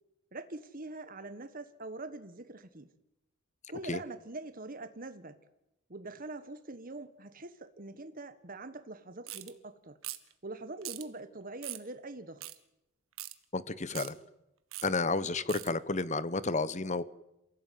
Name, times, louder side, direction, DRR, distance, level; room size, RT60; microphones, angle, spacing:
voice 1, 0.3-2.9 3.7-5.4 5.9-10.0 10.4-12.4, right 2 dB, 40° right, 9 dB, 1.5 m, -44 dB
sound 1, 9.3-9.5 10.0-10.3 10.8-11.0 11.6-11.9 12.4-12.6 13.2-13.3 13.9-14.1 14.7-14.9 15.5-15.7, right 15 dB, 80° right, 1.8 m, -41 dB
voice 2, 13.5-14.2 14.8-17.0, left 3 dB, 35° left, 16 dB, 1.0 m, -31 dB
28.5 x 16.5 x 9.4 m, 0.89 s
head